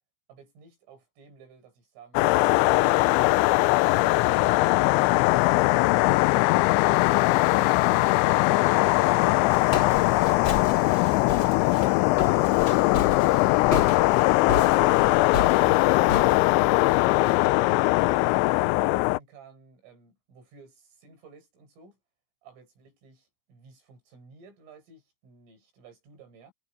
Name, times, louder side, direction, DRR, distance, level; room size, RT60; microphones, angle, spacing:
voice 1, 0.3-2.7 3.2-3.6 3.9-7.1 7.4-9.4 9.7-11.1 11.5-16.7 17.4-22.0 22.4-26.5, right 5 dB, 75° right, 9.6 m, -53 dB
sound 1, 2.2-19.2, left 21 dB, 90° left, 2.6 m, -21 dB
Walk footsteps, 8.9-17.5, left 5 dB, 55° left, 1.4 m, -34 dB
omnidirectional pair, 5.9 m